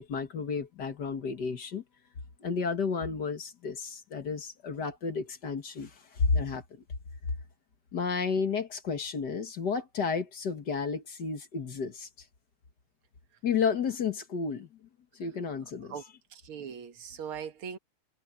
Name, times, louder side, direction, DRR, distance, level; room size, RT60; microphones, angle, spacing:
voice 1, 0.0-1.8 2.4-6.6 7.9-12.1 13.4-14.7 15.2-15.9, left 5 dB, 55° left, 2.0 m, -31 dB
voice 2, 16.3-17.8, right 7 dB, 80° right, 2.3 m, -40 dB
omnidirectional pair, 2.3 m